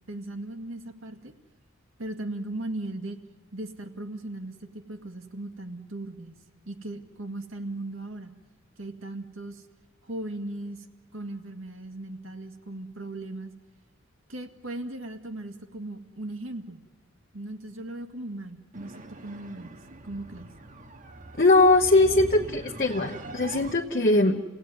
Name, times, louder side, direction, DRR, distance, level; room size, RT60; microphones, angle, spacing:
voice 1, 0.1-1.3 2.0-3.2 3.5-6.4 6.7-8.3 8.8-9.6 10.0-10.9 11.1-13.5 14.3-16.8 17.3-19.7 20.0-20.5, right 2 dB, 75° right, 6 dB, 2.0 m, -37 dB
sound 1, 18.7-23.7, right 2 dB, 40° right, 1.3 m, -42 dB
voice 2, 21.4-24.4, left 2 dB, 45° left, 1 dB, 1.1 m, -21 dB
28.5 x 17.5 x 9.5 m, 1.3 s
head